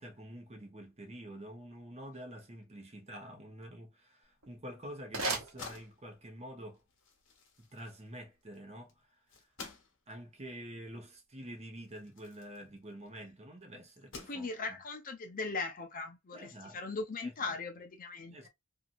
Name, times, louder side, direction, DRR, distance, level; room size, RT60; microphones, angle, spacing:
voice 1, 0.0-6.8 7.6-9.2 10.1-14.8 16.3-16.8 17.2-17.5 18.3-18.5, equal, 30° right, 0.9 m, -48 dB
sound 1, 4.2-6.3, right 3 dB, 75° right, 0.9 m, -39 dB
sound 2, 5.1-13.2 13.8-14.9, left 4 dB, 65° left, 1.0 m, -53 dB
voice 2, 14.3-18.5, left 3 dB, 40° left, 0.6 m, -39 dB
2.7 x 2.5 x 2.5 m
head